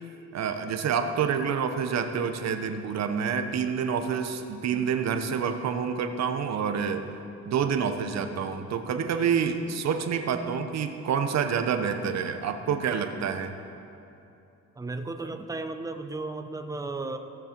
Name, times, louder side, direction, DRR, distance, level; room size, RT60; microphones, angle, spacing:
voice 1, 0.3-7.1 7.4-13.5, right 7 dB, 60° right, 7 dB, 0.9 m, -28 dB
voice 2, 14.8-17.2, right 3 dB, 10° right, 7 dB, 0.7 m, -34 dB
16.5 x 6.5 x 4.4 m, 2.8 s
cardioid pair, 90°, 30 cm